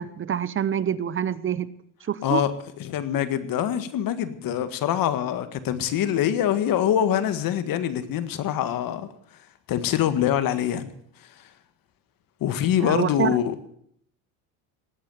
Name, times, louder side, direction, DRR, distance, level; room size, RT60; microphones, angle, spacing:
voice 1, 0.0-1.7 2.1-2.4 12.8-13.4, right 9 dB, 30° right, 17 dB, 0.7 m, -26 dB
voice 2, 2.2-2.5 2.8-9.1 9.7-10.9 11.2-11.5 12.4-13.6, left 10 dB, 50° left, 11 dB, 1.8 m, -24 dB
18.5 x 8.5 x 7.9 m, 0.67 s
supercardioid pair, 110°, 43 cm